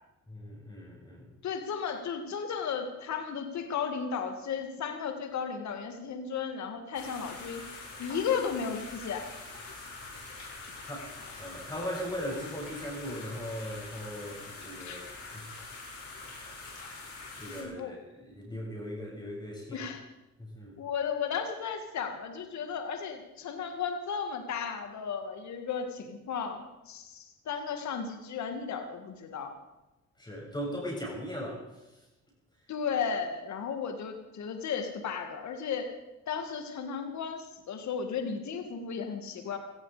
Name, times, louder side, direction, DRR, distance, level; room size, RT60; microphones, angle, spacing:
voice 1, 0.3-1.3 10.9-11.1 11.4-15.1 15.3-15.6 17.3-19.9 20.4-20.7 30.2-31.6, equal, 15° left, -3 dB, 7.7 m, -38 dB
voice 2, 1.4-7.6 8.0-9.3 10.6-10.7 14.8-15.0 17.6-18.0 19.7-20.0 20.8-29.5 32.7-35.9 36.3-39.6, left 6 dB, 65° left, 6 dB, 2.2 m, -34 dB
sound 1, 6.9-17.6, left 3 dB, 50° left, 6.3 m, -44 dB
17.0 x 15.0 x 5.1 m, 1.0 s
cardioid pair, 90°, 30 cm